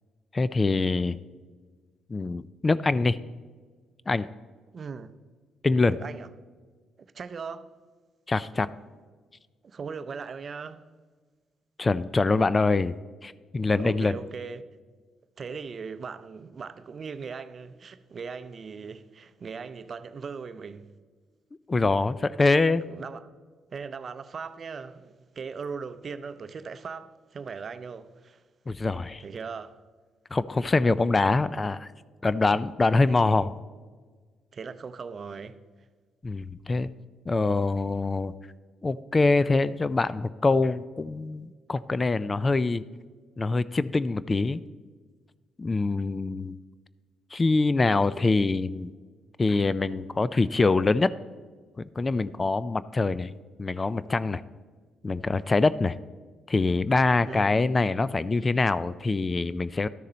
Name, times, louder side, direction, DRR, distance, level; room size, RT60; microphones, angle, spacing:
voice 1, 0.3-1.2 2.1-3.2 4.1-4.3 5.6-5.9 8.3-8.7 11.8-13.0 13.2-14.1 21.7-22.8 28.7-29.2 30.3-31.9 32.2-33.5 36.2-36.9 37.3-38.3 38.8-42.8 43.4-44.6 45.6-46.6 47.3-48.9 49.4-51.1 51.8-53.3 53.6-54.4 55.0-56.0 56.5-59.9, left 3 dB, 25° left, 0.3 m, -24 dB
voice 2, 4.7-5.1 5.9-6.3 7.1-7.7 9.6-10.9 13.6-14.7 15.4-20.9 22.8-23.3 23.7-28.4 29.2-29.8 32.5-32.7 33.1-33.2 34.5-35.6 57.2-57.5, right 5 dB, 45° right, 0.6 m, -39 dB
12.5 x 6.6 x 4.3 m
cardioid pair, 90°, 0 cm